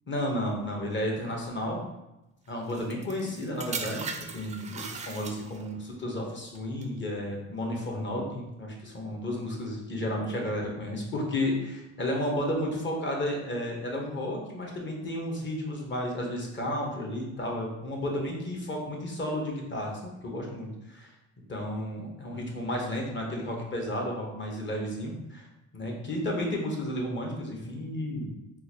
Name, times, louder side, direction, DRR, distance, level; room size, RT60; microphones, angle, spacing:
voice 1, 0.1-1.8 2.5-4.1 4.3-21.1 21.5-25.5 25.7-28.3, left 1 dB, 40° left, 0 dB, 1.0 m, -32 dB
sound 1, 2.7-5.8 6.6-6.8, right 5 dB, 25° right, 0.3 m, -38 dB
3.8 x 2.4 x 2.8 m, 0.95 s
cardioid pair, 90°, 30 cm